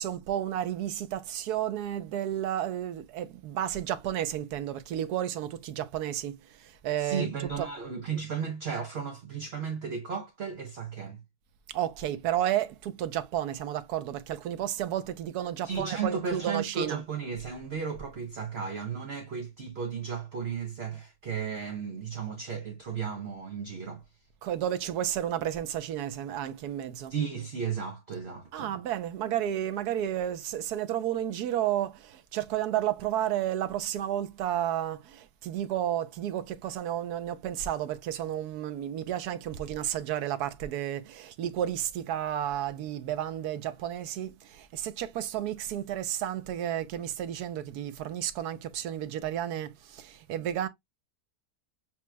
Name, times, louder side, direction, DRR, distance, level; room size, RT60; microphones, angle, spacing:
voice 1, 0.0-7.7 11.7-17.0 24.4-27.2 28.5-50.7, right 11 dB, 80° right, 1.2 m, -32 dB
voice 2, 7.0-11.2 15.6-24.0 27.1-28.7, right 6 dB, 50° right, 0.8 m, -34 dB
7.4 x 2.9 x 2.2 m
omnidirectional pair, 1.7 m